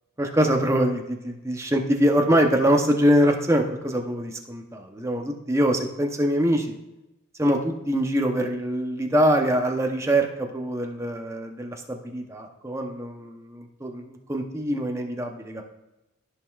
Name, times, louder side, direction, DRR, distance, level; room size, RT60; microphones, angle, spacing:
voice 1, 0.2-6.7 7.4-15.6, equal, 15° right, 3 dB, 0.7 m, -24 dB
14.0 x 5.3 x 2.4 m, 0.98 s
head